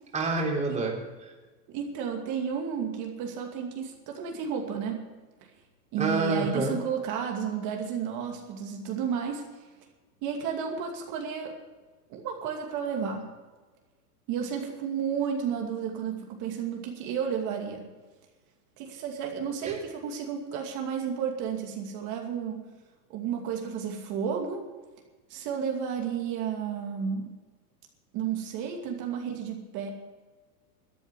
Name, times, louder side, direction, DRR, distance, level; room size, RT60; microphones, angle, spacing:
voice 1, 0.1-1.3 6.0-6.7 19.6-19.8, right 3 dB, 15° right, 0 dB, 3.3 m, -28 dB
voice 2, 1.7-5.0 5.9-9.5 10.2-11.5 12.1-13.3 14.3-17.9 18.8-22.6 23.1-24.7 25.3-27.3 28.1-29.9, right 7 dB, 40° right, 2 dB, 2.5 m, -32 dB
13.5 x 9.3 x 8.4 m, 1.3 s
hypercardioid pair, 135°, 47 cm